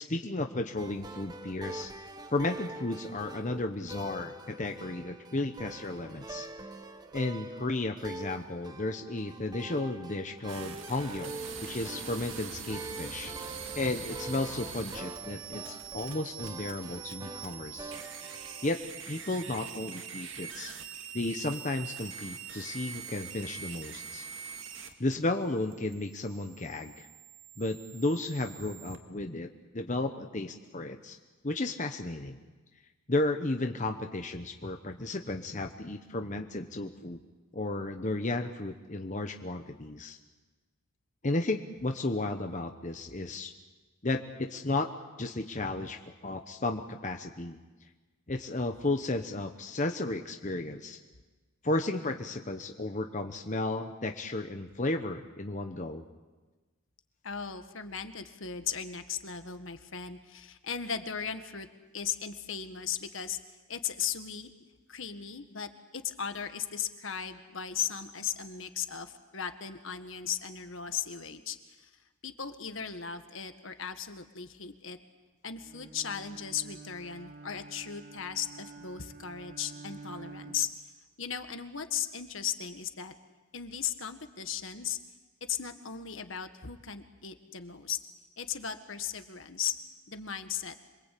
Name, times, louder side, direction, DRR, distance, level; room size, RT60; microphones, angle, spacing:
voice 1, 0.0-1.9 2.3-6.5 7.1-11.3 11.6-13.3 13.7-17.9 18.6-18.8 19.1-20.7 21.1-24.2 25.0-27.1 27.6-31.2 31.4-32.4 33.1-37.2 37.5-40.2 41.2-43.5 44.0-44.9 45.2-47.6 48.3-51.0 51.6-56.0, left 2 dB, 35° left, 5 dB, 1.1 m, -33 dB
sound 1, 0.8-18.7, right 2 dB, 20° right, 1.2 m, -45 dB
sound 2, 10.5-29.0, right 6 dB, 60° right, 2.2 m, -43 dB
voice 2, 57.2-61.7 61.9-63.4 63.7-64.5 64.9-71.9 72.2-75.0 75.4-80.7 81.2-83.1 83.5-85.0 85.5-88.0 88.4-89.7 90.1-90.8, left 8 dB, 65° left, 8 dB, 1.7 m, -37 dB
Bowed string instrument, 75.6-80.9, right 4 dB, 40° right, 1.6 m, -49 dB
26.5 x 23.5 x 8.6 m, 1.3 s
head